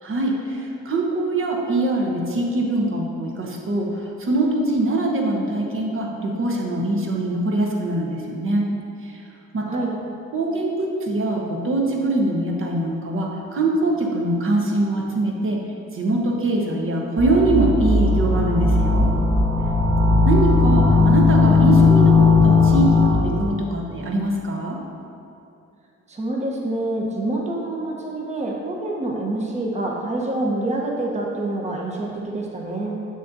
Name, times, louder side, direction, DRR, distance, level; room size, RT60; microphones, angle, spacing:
voice 1, 0.0-8.7 9.0-9.2 9.5-9.9 10.3-15.6 15.9-19.1 20.2-24.8, right 2 dB, 45° right, -1 dB, 1.1 m, -23 dB
voice 2, 9.6-9.9 26.1-33.0, right 2 dB, 20° right, -2 dB, 1.0 m, -26 dB
sound 1, 17.2-23.5, left 3 dB, 5° left, 0.8 m, -17 dB
7.1 x 6.3 x 2.7 m, 2.7 s
cardioid pair, 90°, 30 cm